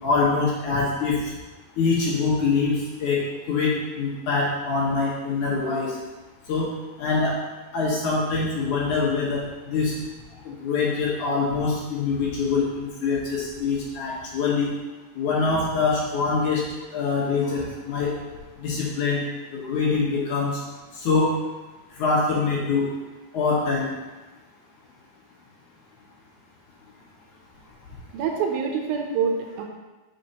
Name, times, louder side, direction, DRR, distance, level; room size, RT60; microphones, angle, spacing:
voice 1, 0.0-1.2 1.8-5.9 6.5-6.7 7.0-7.4 7.7-9.9 10.4-14.7 15.2-16.6 16.9-18.1 18.6-19.2 19.5-20.6 21.0-21.3 22.0-22.9 23.3-23.9, left 4 dB, 65° left, -5 dB, 2.4 m, -24 dB
voice 2, 28.1-29.6, right 6 dB, 75° right, 2 dB, 2.5 m, -26 dB
11.0 x 5.6 x 2.9 m, 1.2 s
omnidirectional pair, 4.4 m